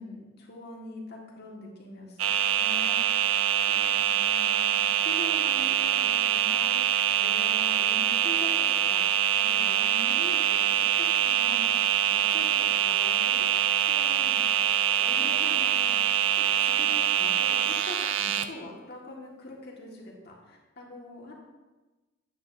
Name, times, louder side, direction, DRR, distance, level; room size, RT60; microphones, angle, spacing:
voice 1, 0.0-3.3 3.7-6.8 7.2-14.4 15.0-15.9 16.4-21.3, left 1 dB, 55° left, -2 dB, 1.7 m, -43 dB
sound 1, 2.2-18.5, right 11 dB, 90° right, 0.5 m, -24 dB
9.1 x 8.3 x 2.6 m, 1.2 s
head